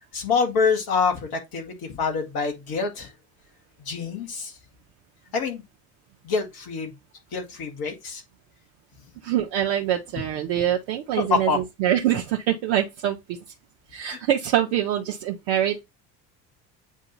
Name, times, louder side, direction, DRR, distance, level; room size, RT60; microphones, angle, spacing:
voice 1, 0.1-3.1 3.9-4.5 5.3-5.6 6.2-6.9 7.3-8.2 11.3-11.6 14.1-14.2, left 5 dB, 45° left, 1.9 m, -26 dB
voice 2, 9.2-13.4 13.9-15.8, right 11 dB, 55° right, 0.9 m, -24 dB
8.2 x 2.8 x 4.1 m
figure-of-eight pair, 60°, 49 cm